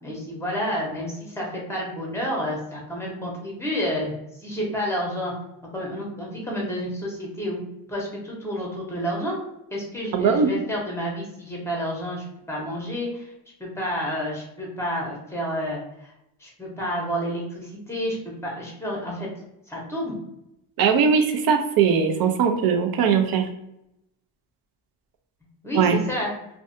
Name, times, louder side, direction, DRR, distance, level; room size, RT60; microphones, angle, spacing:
voice 1, 0.0-4.1 4.4-5.3 5.7-7.6 7.9-9.4 9.7-13.3 13.6-16.1 16.4-18.2 18.4-19.3 19.7-20.1 25.6-26.3, equal, 5° left, -2 dB, 0.8 m, -29 dB
voice 2, 10.1-10.5 20.8-23.4 25.7-26.0, right 6 dB, 50° right, 6 dB, 0.5 m, -20 dB
2.5 x 2.2 x 2.6 m, 0.83 s
cardioid pair, 105°, 46 cm